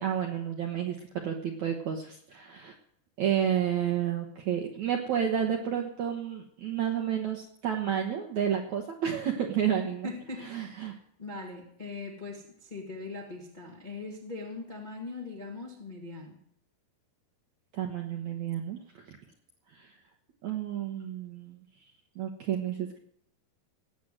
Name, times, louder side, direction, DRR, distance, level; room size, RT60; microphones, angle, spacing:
voice 1, 0.0-2.7 3.2-10.1 10.4-10.9 17.7-19.0 19.8-19.9 20.4-21.6 22.2-23.0, right 9 dB, 70° right, 3 dB, 1.8 m, -31 dB
voice 2, 10.0-16.4, left 3 dB, 30° left, -1 dB, 0.8 m, -41 dB
18.5 x 7.9 x 7.8 m, 0.70 s
omnidirectional pair, 4.9 m